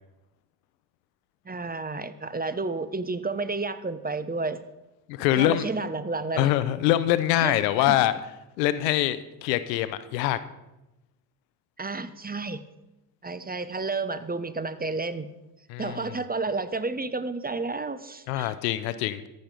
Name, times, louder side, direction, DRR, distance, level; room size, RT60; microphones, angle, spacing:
voice 1, 1.5-4.6 5.3-6.5 7.4-8.0 11.8-12.6 13.2-15.3 15.8-18.5, right 3 dB, 20° right, 13 dB, 0.9 m, -31 dB
voice 2, 5.1-5.7 6.4-8.1 8.6-10.4 15.7-16.1 18.3-19.2, left 13 dB, 90° left, 14 dB, 0.6 m, -24 dB
14.0 x 6.6 x 5.1 m, 0.96 s
hypercardioid pair, 45°, 49 cm